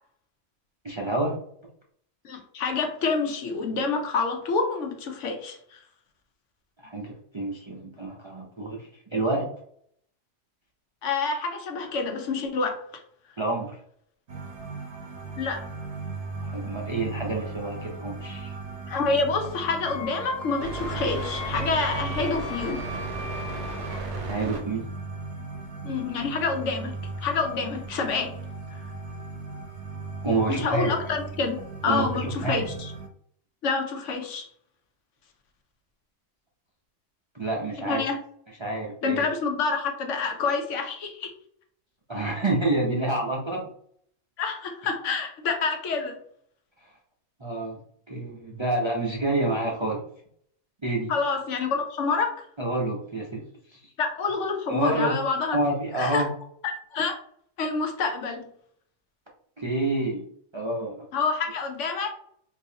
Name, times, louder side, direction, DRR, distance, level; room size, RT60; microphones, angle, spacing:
voice 1, 0.8-1.4 6.8-9.5 13.4-13.8 16.4-18.6 24.3-24.8 30.2-30.9 31.8-32.6 37.3-38.0 38.6-39.3 42.1-43.6 47.4-47.8 48.1-50.0 50.8-51.1 52.6-53.4 53.7-53.9 54.7-55.1 55.5-56.3 59.6-60.2 60.5-61.0, right 2 dB, 35° right, -2 dB, 0.5 m, -28 dB
voice 2, 2.2-5.8 11.0-12.8 15.4-15.6 18.9-22.9 25.8-28.4 28.7-28.8 30.5-31.6 31.8-32.9 33.6-34.5 37.8-38.2 39.0-41.3 44.4-46.2 51.1-52.4 54.0-55.6 56.0-56.2 56.6-57.2 57.6-58.5 61.1-62.1, left 4 dB, 80° left, 4 dB, 1.0 m, -27 dB
sound 1, 14.3-33.1, right 3 dB, 70° right, 1.1 m, -36 dB
Wind instrument woodwind instrument, 19.8-24.0, left 3 dB, 50° left, 1.2 m, -39 dB
3.7 x 2.7 x 2.8 m, 0.63 s
omnidirectional pair, 1.3 m